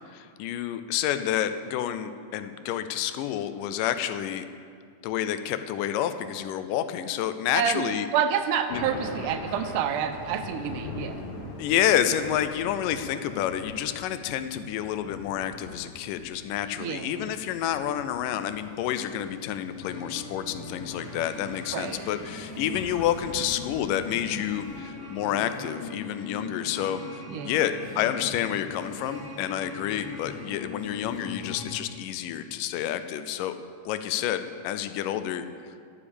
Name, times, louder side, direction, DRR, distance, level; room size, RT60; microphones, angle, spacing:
voice 1, 0.1-4.5 5.0-8.1 8.7-8.8 11.6-33.5 33.9-35.5, left 11 dB, 85° left, 10 dB, 2.3 m, -29 dB
voice 2, 7.5-11.2 16.8-17.3 21.7-22.1 27.3-27.6, right 8 dB, 85° right, 8 dB, 2.1 m, -29 dB
Thunder, 8.7-24.8, left 3 dB, 65° left, 2.7 m, -43 dB
sound 1, 19.8-31.7, left 3 dB, 5° left, 2.5 m, -40 dB
11.0 x 9.9 x 7.0 m, 2.3 s
omnidirectional pair, 3.8 m